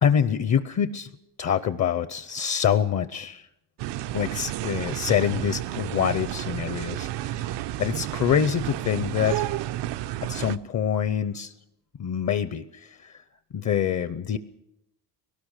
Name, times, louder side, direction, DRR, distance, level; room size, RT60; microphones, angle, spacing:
voice 1, 0.0-1.1 1.4-3.5 4.1-9.5 10.2-11.5 12.0-13.2 13.5-14.4, left 8 dB, 40° left, 12 dB, 0.7 m, -26 dB
sound 1, 3.8-10.6, right 14 dB, 85° right, 0.7 m, -31 dB
22.0 x 18.5 x 6.5 m, 0.84 s
cardioid pair, 155°, 41 cm